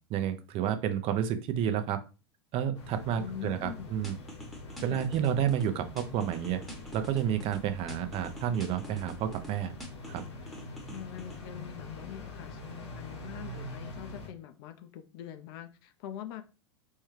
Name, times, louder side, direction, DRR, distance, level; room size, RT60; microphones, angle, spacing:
voice 1, 0.1-2.0 2.5-4.1 4.8-6.6 6.9-9.7 10.1-10.2, right 9 dB, 40° right, 9 dB, 0.5 m, -30 dB
sound 1, 2.7-14.3, left 2 dB, 90° left, 1.1 m, -44 dB
voice 2, 3.2-4.0 4.9-5.1 10.9-16.4, left 10 dB, 55° left, 7 dB, 0.5 m, -44 dB
sound 2, 4.0-5.7 6.0-7.6 7.9-9.5 9.8-11.4, left 1 dB, ahead, 0.9 m, -46 dB
4.4 x 2.3 x 3.1 m, 0.32 s
hypercardioid pair, 95°, 14 cm